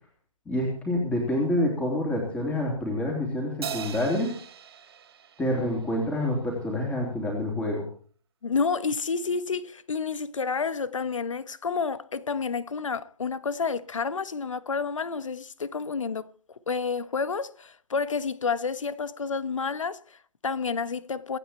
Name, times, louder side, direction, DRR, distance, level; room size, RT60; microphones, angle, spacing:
voice 1, 0.4-4.3 5.4-7.9, left 1 dB, 5° left, 3.3 m, -27 dB
Crash cymbal, 3.6-6.3, right 8 dB, 45° right, 2.0 m, -39 dB
voice 2, 8.4-16.3 16.7-21.4, left 5 dB, 60° left, 1.4 m, -30 dB
26.5 x 9.2 x 4.4 m
figure-of-eight pair, 150°, 18 cm